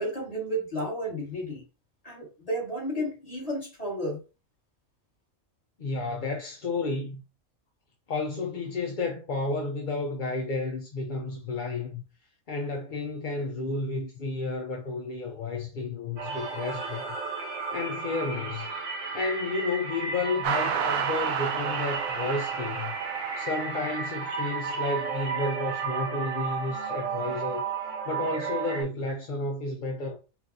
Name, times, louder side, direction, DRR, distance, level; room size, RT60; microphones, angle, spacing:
voice 1, 0.0-1.6 2.0-4.2, equal, 25° left, 2.0 m, -32 dB
voice 2, 5.8-7.2 8.1-12.0 12.5-17.1 17.7-18.7 19.1-23.0 23.4-27.7 28.1-30.2, left 3 dB, 50° left, 0.6 m, -32 dB
sound 1, 16.2-28.8, right 5 dB, 65° right, 1.2 m, -33 dB
sound 2, 20.4-25.2, right 8 dB, 85° right, 1.0 m, -32 dB
5.6 x 2.5 x 2.8 m
omnidirectional pair, 1.4 m